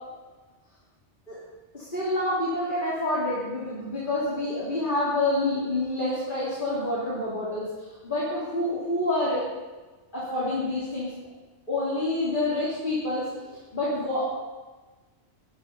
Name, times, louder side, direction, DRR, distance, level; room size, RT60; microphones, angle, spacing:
voice 1, 1.7-7.7 8.0-9.5 10.1-11.1 11.7-13.3 13.7-14.3, left 1 dB, 45° left, -8 dB, 3.7 m, -27 dB
14.0 x 10.5 x 5.5 m, 1.3 s
omnidirectional pair, 1.2 m